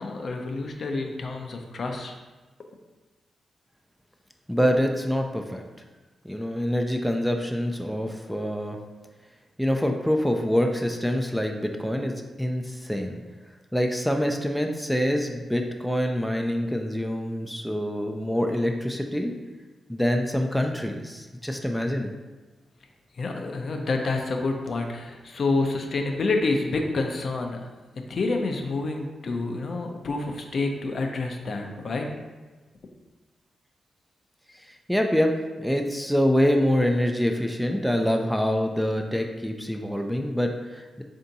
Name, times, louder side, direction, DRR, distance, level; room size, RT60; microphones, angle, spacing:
voice 1, 0.0-2.1 23.2-27.6 28.1-32.1, left 3 dB, 60° left, 3 dB, 0.5 m, -28 dB
voice 2, 4.5-5.6 6.2-8.8 9.6-13.2 13.7-19.3 19.9-22.1 34.9-41.0, equal, ahead, 3 dB, 0.4 m, -25 dB
3.4 x 2.7 x 3.9 m, 1.2 s
cardioid pair, 65°, 0 cm